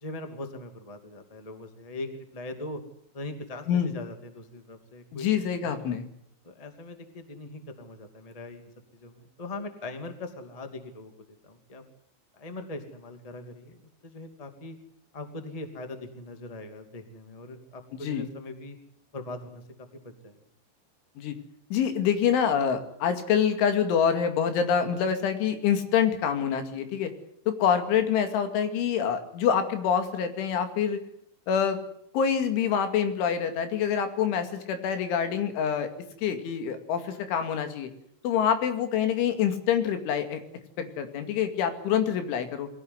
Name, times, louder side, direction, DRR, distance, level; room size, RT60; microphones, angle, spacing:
voice 1, 0.0-2.8 3.1-5.3 5.6-5.9 6.4-11.1 11.4-11.8 12.3-13.8 14.0-14.7 15.1-18.8 19.1-19.6 19.9-20.4, left 2 dB, 15° left, 6 dB, 1.4 m, -41 dB
voice 2, 5.1-6.1 17.9-18.3 21.2-21.3 21.7-27.1 27.5-31.0 31.5-31.8 32.1-35.9 36.2-37.9 38.2-40.4 40.8-42.7, left 8 dB, 90° left, 7 dB, 4.7 m, -26 dB
23.0 x 16.5 x 9.7 m, 0.72 s
omnidirectional pair, 5.3 m